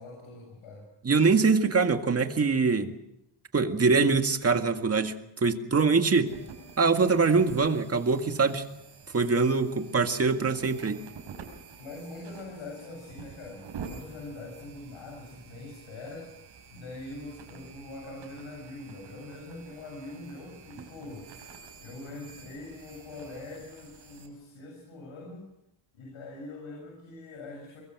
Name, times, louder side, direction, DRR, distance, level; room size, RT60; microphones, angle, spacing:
voice 1, 0.0-0.9 11.8-16.3 16.7-21.3 21.8-25.5 25.9-27.8, left 2 dB, 80° left, 0 dB, 7.8 m, -43 dB
voice 2, 1.0-2.9 3.5-5.1 5.4-6.3 6.8-8.6 9.1-11.0, right 4 dB, 30° right, 6 dB, 2.0 m, -23 dB
sound 1, 6.3-24.3, right 6 dB, 70° right, 5.8 m, -48 dB
24.0 x 23.0 x 6.2 m, 0.82 s
cardioid pair, 115°, 48 cm